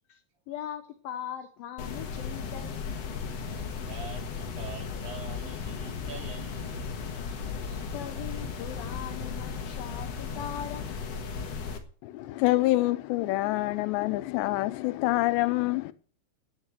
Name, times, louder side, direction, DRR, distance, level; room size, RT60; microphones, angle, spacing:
voice 1, 0.1-3.0 7.6-7.7 7.9-11.0 15.8-15.9, left 10 dB, 75° left, 2.2 m, -40 dB
sound 1, 1.8-11.8, left 5 dB, 60° left, 1.8 m, -36 dB
voice 2, 3.9-6.8 7.2-7.8, right 5 dB, 70° right, 5.1 m, -45 dB
voice 3, 12.0-15.9, left 19 dB, 90° left, 2.9 m, -26 dB
11.0 x 7.5 x 7.9 m
omnidirectional pair, 4.9 m